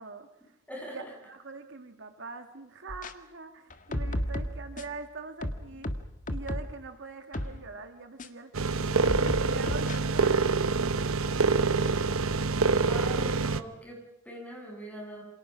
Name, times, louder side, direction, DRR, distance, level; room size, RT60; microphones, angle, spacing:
voice 1, 0.0-0.6 0.9-5.9 6.3-11.1, right 4 dB, 60° right, 7 dB, 1.8 m, -43 dB
voice 2, 0.7-1.0 12.9-15.2, equal, 5° left, -1 dB, 8.0 m, -42 dB
sound 1, 2.9-3.1 3.7-5.0 5.4-6.8 7.3-7.6 8.2-8.3 9.0-10.0, left 1 dB, 40° left, 1.6 m, -33 dB
sound 2, 8.5-13.6, right 4 dB, 80° right, 1.0 m, -26 dB
28.0 x 27.5 x 6.2 m, 0.87 s
head